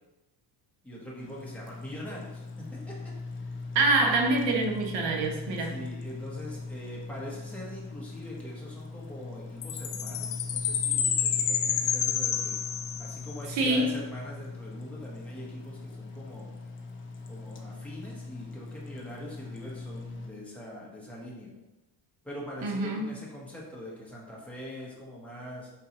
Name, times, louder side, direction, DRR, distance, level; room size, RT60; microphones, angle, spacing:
voice 1, 0.8-3.5 5.7-12.6 13.0-16.5 17.3-21.5 22.2-25.7, equal, 5° left, -5 dB, 0.8 m, -43 dB
sound 1, 1.2-20.3, left 3 dB, 30° left, 0.3 m, -40 dB
voice 2, 3.7-5.9 13.5-13.9 22.6-23.2, right 2 dB, 80° right, 2 dB, 0.8 m, -26 dB
Chime, 9.6-13.3, left 8 dB, 90° left, 0.5 m, -29 dB
4.1 x 3.8 x 2.8 m, 1.0 s
cardioid pair, 160°, 44 cm